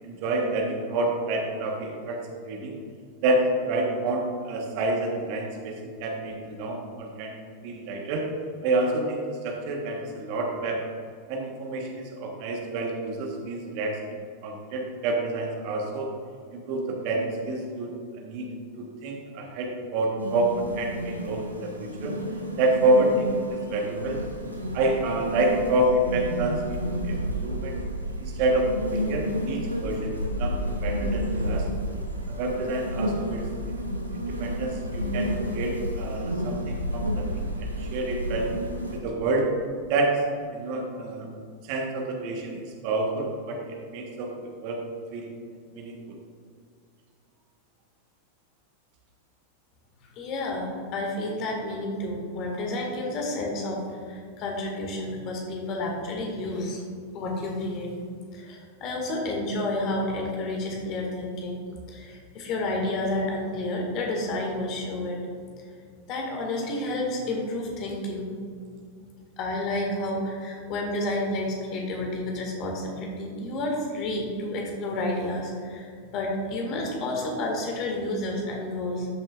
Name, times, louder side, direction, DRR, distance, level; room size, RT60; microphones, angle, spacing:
voice 1, 0.0-2.2 2.4-2.8 3.2-7.3 7.6-8.3 8.6-10.8 11.3-14.2 14.4-16.1 16.5-18.5 18.8-22.1 22.6-24.2 24.7-27.8 28.2-30.1 30.4-31.7 32.3-33.4 33.7-33.8 34.1-38.5 38.9-39.5 39.9-40.2 40.5-41.3 41.6-44.8 45.1-45.3 45.7-46.2, right 2 dB, 45° right, 1 dB, 1.4 m, -28 dB
sound 1, 20.2-39.0, equal, 85° right, 1.0 m, -31 dB
voice 2, 50.2-56.8 57.1-57.9 58.3-61.6 61.9-65.2 66.1-68.3 69.4-79.1, left 1 dB, 40° left, 0 dB, 2.0 m, -30 dB
12.5 x 7.3 x 2.5 m, 2.2 s
figure-of-eight pair, 90°, 0 cm